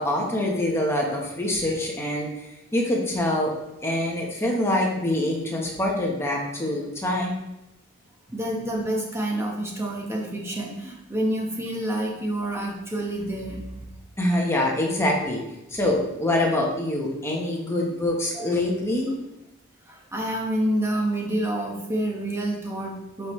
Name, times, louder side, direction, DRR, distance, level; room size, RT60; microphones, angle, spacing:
voice 1, 0.0-3.5 3.8-7.4 14.2-15.4 15.7-19.1, left 1 dB, 10° left, -2 dB, 1.3 m, -25 dB
voice 2, 8.3-13.7 18.3-18.5 19.8-23.3, right 1 dB, 15° right, -2 dB, 1.4 m, -28 dB
10.5 x 5.2 x 3.3 m, 0.93 s
head